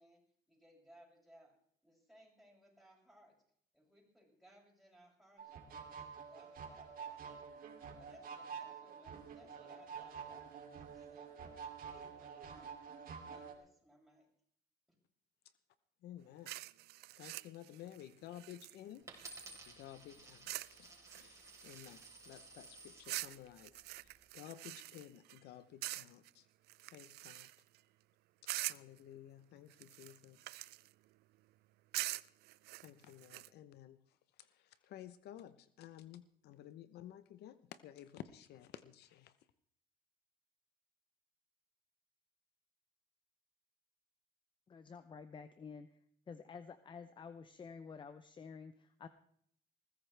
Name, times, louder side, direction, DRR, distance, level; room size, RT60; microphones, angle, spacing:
voice 1, 0.0-1.5 1.8-3.4 3.7-7.5 8.0-11.6 12.0-12.7 13.2-14.3 14.9-15.0, right 1 dB, ahead, -3 dB, 7.1 m, -64 dB
sound 1, 5.4-13.6, right 6 dB, 60° right, 2.8 m, -49 dB
voice 2, 16.0-16.5 17.2-19.1 19.7-20.5 20.8-26.5 26.9-27.5 28.4-30.6 32.8-39.3, left 12 dB, 75° left, 13 dB, 0.8 m, -54 dB
sound 2, 16.5-19.7 20.5-20.8 21.1-22.2 23.0-25.4 25.8-26.3 26.7-27.8 28.5-29.0 29.7-30.9 31.9-33.5, right 18 dB, 75° right, 0.5 m, -45 dB
Coin (dropping), 19.1-23.1 23.8-24.2, right 2 dB, 20° right, 4.3 m, -55 dB
voice 3, 44.7-45.9 46.3-49.1, left 5 dB, 30° left, 11 dB, 0.7 m, -51 dB
20.5 x 15.0 x 3.4 m, 0.65 s
cardioid pair, 110°, 17 cm